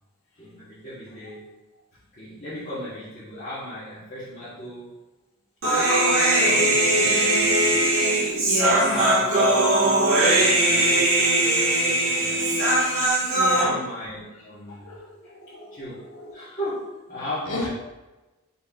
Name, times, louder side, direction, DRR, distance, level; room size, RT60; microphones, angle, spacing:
voice 1, 0.4-1.4 2.1-4.9 6.4-8.1 8.8-12.6 13.4-14.9 15.7-16.0 16.3-17.7, equal, 40° left, -11 dB, 1.2 m, -36 dB
Human voice, 5.6-13.6, right 1 dB, 85° right, 1.5 m, -20 dB
voice 2, 7.0-7.5 8.3-8.9 13.3-13.7 14.8-15.8 16.2-16.4 17.5-17.6, left 1 dB, 80° left, -2 dB, 1.1 m, -31 dB
5.4 x 4.2 x 2.3 m, 1.1 s
head